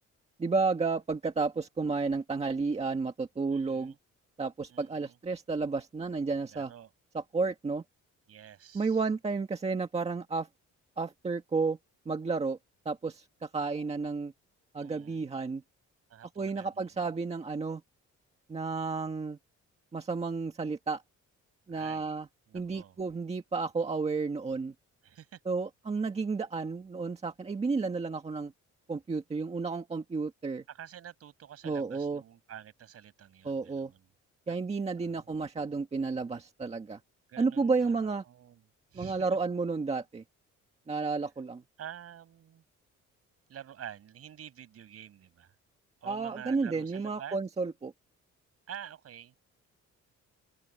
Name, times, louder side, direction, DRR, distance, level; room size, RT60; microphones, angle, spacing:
voice 1, 0.4-3.9 4.4-6.7 7.1-7.8 8.7-10.5 11.0-11.8 12.0-12.6 12.8-14.3 14.7-15.6 16.4-17.8 18.5-19.4 19.9-21.0 21.7-22.3 22.5-24.7 25.4-28.5 28.9-30.6 31.6-32.2 33.4-33.9 34.5-37.0 37.4-38.2 38.9-40.2 40.9-41.6 46.0-47.9, right 4 dB, 20° right, 1.7 m, -32 dB
voice 2, 3.5-4.0 4.7-5.2 6.5-6.9 8.3-9.0 14.8-15.2 16.1-17.1 21.7-22.2 22.5-23.0 25.0-25.4 30.7-34.1 35.0-35.3 37.3-38.6 38.9-39.3 41.8-42.6 43.5-45.5 46.0-47.4 48.7-49.3, right 9 dB, 55° right, 6.9 m, -48 dB
open air
cardioid pair, 170°, 29 cm